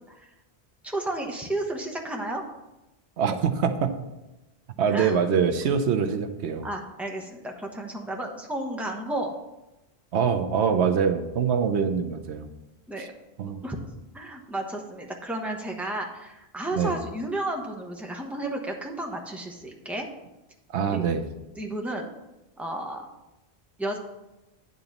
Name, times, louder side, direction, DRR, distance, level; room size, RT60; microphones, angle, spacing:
voice 1, 0.8-2.4 4.9-5.2 6.6-9.3 12.9-13.1 13.6-13.8 14.1-20.1 20.9-21.0 21.6-22.1 22.6-23.1 23.8-24.0, right 1 dB, ahead, 1 dB, 1.0 m, -32 dB
voice 2, 3.2-4.0 4.8-6.7 10.1-12.5 13.4-13.6 16.7-17.0 20.7-21.3, right 6 dB, 85° right, 7 dB, 1.0 m, -24 dB
9.8 x 3.9 x 7.1 m, 0.98 s
omnidirectional pair, 1.1 m